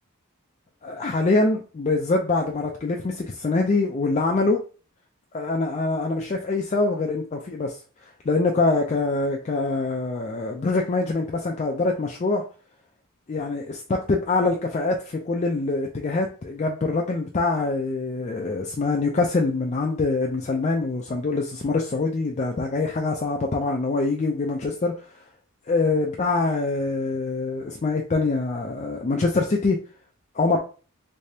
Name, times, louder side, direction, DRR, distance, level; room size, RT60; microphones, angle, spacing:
voice 1, 0.8-4.6 5.3-12.4 13.3-25.1 25.7-29.8 30.3-30.6, left 3 dB, 30° left, 1 dB, 0.4 m, -24 dB
3.3 x 3.3 x 2.7 m, 0.37 s
head